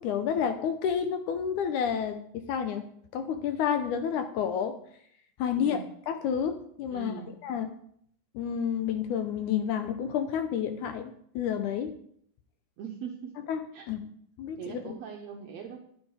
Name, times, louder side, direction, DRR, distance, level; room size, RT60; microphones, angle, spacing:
voice 1, 0.0-2.9 3.1-4.8 5.4-7.1 7.4-7.7 8.4-12.0 13.5-13.6 13.9-14.0 14.4-14.9, left 8 dB, 75° left, 8 dB, 1.9 m, -30 dB
voice 2, 5.6-5.9 6.9-7.3 12.8-13.4 13.7-13.9 14.6-15.8, right 8 dB, 75° right, 3 dB, 1.6 m, -41 dB
10.5 x 9.7 x 4.7 m, 0.68 s
omnidirectional pair, 4.1 m